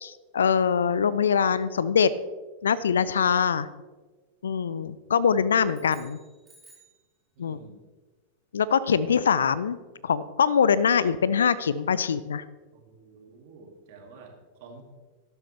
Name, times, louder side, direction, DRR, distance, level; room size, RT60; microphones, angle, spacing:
voice 1, 0.0-2.1 2.6-3.7 4.4-6.2 7.4-7.6 8.5-9.8 10.0-12.4, left 7 dB, 65° left, 18 dB, 0.5 m, -23 dB
sound 1, 5.7-7.1, right 2 dB, 15° right, 4.3 m, -56 dB
voice 2, 7.3-7.8 12.7-14.9, right 3 dB, 50° right, 3 dB, 2.2 m, -49 dB
12.5 x 11.5 x 3.3 m, 1.3 s
figure-of-eight pair, 90°, 0 cm